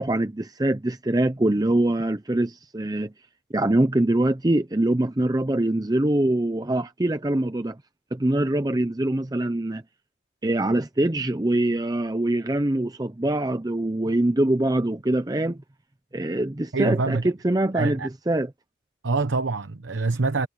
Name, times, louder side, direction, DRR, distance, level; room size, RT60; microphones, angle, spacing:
voice 1, 0.0-3.1 3.5-7.8 8.1-9.8 10.4-15.6 16.1-18.0 18.3-18.5, right 1 dB, 20° right, 0.6 m, -23 dB
voice 2, 16.7-17.3 17.7-18.1 19.0-20.5, right 3 dB, 85° right, 0.9 m, -25 dB
head